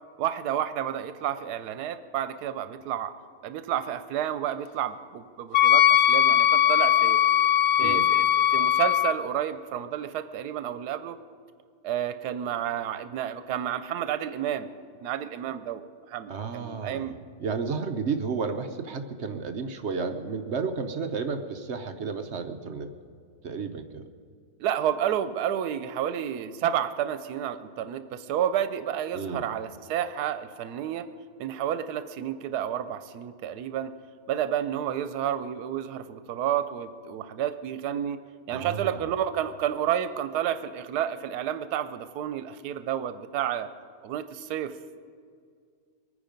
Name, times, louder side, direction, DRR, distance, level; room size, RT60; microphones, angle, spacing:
voice 1, 0.2-3.1 3.4-7.2 7.8-11.2 11.8-14.7 15.0-17.2 24.6-31.1 31.4-33.9 34.3-38.2 38.5-43.7 44.0-44.7, right 10 dB, 90° right, 11 dB, 1.2 m, -30 dB
Wind instrument woodwind instrument, 5.5-9.2, left 10 dB, 75° left, 0.6 m, -20 dB
voice 2, 16.3-22.9 23.4-24.1 29.1-29.4 38.5-39.1, right 5 dB, 55° right, 7 dB, 0.9 m, -32 dB
23.0 x 9.8 x 5.2 m, 2.2 s
omnidirectional pair, 1.7 m